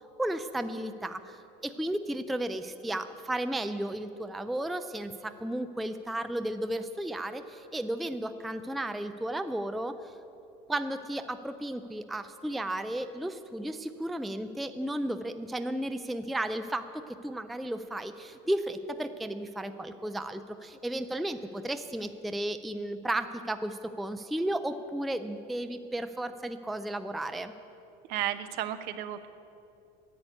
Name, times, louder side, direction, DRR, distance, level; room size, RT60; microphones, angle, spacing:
voice 1, 0.2-10.1 10.7-27.5, right 1 dB, ahead, 10 dB, 0.3 m, -34 dB
voice 2, 28.1-29.3, right 11 dB, 60° right, 10 dB, 0.8 m, -33 dB
10.5 x 8.3 x 9.3 m, 2.8 s
cardioid pair, 140°, 18 cm